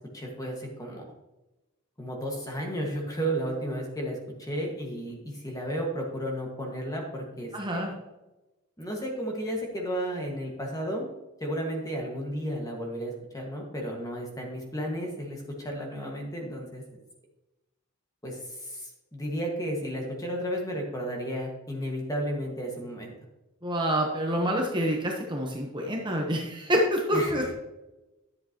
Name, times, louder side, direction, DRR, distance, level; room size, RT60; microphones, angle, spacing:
voice 1, 0.1-1.0 2.0-7.9 8.8-11.1 11.4-16.8 18.2-23.1 27.1-27.4, equal, 15° left, 0 dB, 1.7 m, -33 dB
voice 2, 7.5-7.9 23.6-27.5, equal, 20° right, 0 dB, 1.0 m, -27 dB
10.5 x 7.6 x 3.0 m, 1.0 s
head